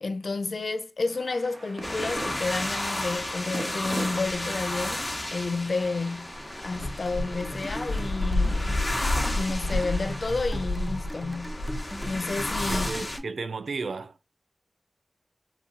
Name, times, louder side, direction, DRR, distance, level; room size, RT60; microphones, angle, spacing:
voice 1, 0.0-6.3 6.6-8.7 9.3-11.6 12.0-12.9, left 3 dB, 70° left, 0.4 m, -31 dB
sound 1, 1.1-12.5, right 2 dB, 55° right, 0.8 m, -43 dB
sound 2, 1.8-13.2, left 1 dB, 35° left, 1.1 m, -30 dB
sound 3, 6.8-13.4, equal, 5° right, 0.5 m, -40 dB
voice 2, 12.7-14.2, right 4 dB, 85° right, 0.3 m, -33 dB
4.1 x 2.3 x 2.4 m
cardioid pair, 40°, 0 cm